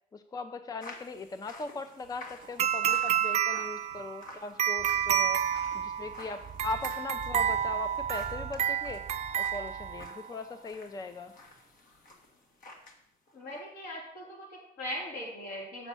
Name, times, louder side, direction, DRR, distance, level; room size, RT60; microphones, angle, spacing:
voice 1, 0.1-5.4 5.7-9.0 9.4-11.3, left 3 dB, 20° left, 10 dB, 0.5 m, -39 dB
sound 1, 0.8-13.0 13.3-13.6, left 2 dB, 55° left, 1.6 m, -52 dB
sound 2, 2.6-10.3, right 9 dB, 40° right, 0.4 m, -30 dB
sound 3, 4.8-10.1, right 7 dB, 20° right, 0.8 m, -47 dB
voice 2, 13.3-15.9, equal, 70° left, -3 dB, 4.2 m, -40 dB
7.1 x 6.1 x 6.7 m, 0.75 s
cardioid pair, 110°, 17 cm